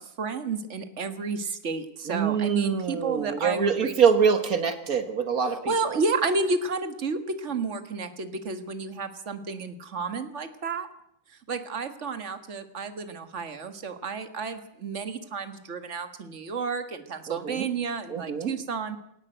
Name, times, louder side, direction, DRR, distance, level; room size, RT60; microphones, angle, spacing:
voice 1, 0.0-3.9 5.7-10.9 11.5-19.0, right 4 dB, 40° right, 8 dB, 1.0 m, -31 dB
voice 2, 2.1-6.0 17.3-17.7 18.1-18.5, right 6 dB, 85° right, 7 dB, 0.7 m, -25 dB
21.0 x 18.0 x 8.0 m, 0.74 s
omnidirectional pair, 3.8 m